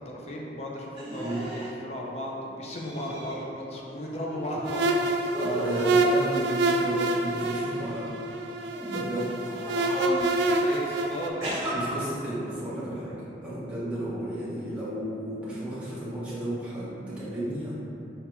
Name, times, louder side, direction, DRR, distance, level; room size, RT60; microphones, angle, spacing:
voice 1, 0.0-5.3 9.5-11.8 14.5-14.7, equal, 35° left, -2 dB, 0.5 m, -36 dB
sound 1, 0.9-1.7 2.7-3.4 3.7-4.8 5.2-6.0 6.7-7.8 8.5-8.9 9.6-10.3 11.4-11.7, right 1 dB, 25° right, 1.4 m, -36 dB
voice 2, 1.1-1.4 5.4-8.2 8.9-9.3 11.7-13.1 13.4-17.7, right 1 dB, 5° right, -11 dB, 0.9 m, -33 dB
sound 2, 4.7-11.3, right 2 dB, 75° right, 0.3 m, -27 dB
5.9 x 2.7 x 2.2 m, 2.8 s
head